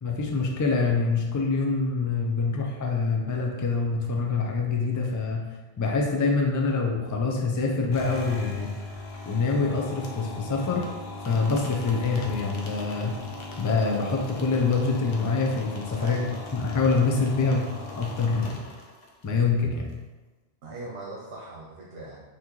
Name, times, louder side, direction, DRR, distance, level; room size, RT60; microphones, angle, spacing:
voice 1, 0.0-5.5 5.8-8.7 9.3-10.9 11.2-13.2 13.6-16.2 16.5-17.7 18.0-18.6 19.2-19.9, left 4 dB, 30° left, 0 dB, 0.4 m, -25 dB
sound 1, 7.9-19.3, left 3 dB, 65° left, 0.9 m, -39 dB
voice 2, 16.0-16.4 20.6-22.2, right 2 dB, 70° right, -3 dB, 1.0 m, -40 dB
5.8 x 2.9 x 3.0 m, 1.2 s
omnidirectional pair, 1.1 m